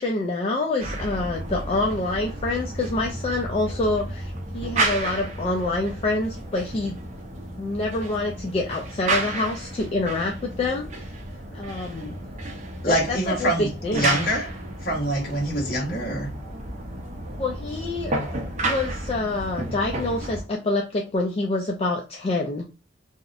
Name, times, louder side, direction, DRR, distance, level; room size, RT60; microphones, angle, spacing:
voice 1, 0.0-6.9 7.6-10.9 11.5-12.2 12.8-14.1 17.4-18.1 18.6-22.6, left 2 dB, 30° left, 0.3 m, -26 dB
sound 1, 0.8-20.4, right 2 dB, 40° right, 0.6 m, -32 dB
voice 2, 12.8-14.5 14.8-16.3, right 1 dB, 55° left, 1.1 m, -25 dB
2.7 x 2.0 x 2.4 m
head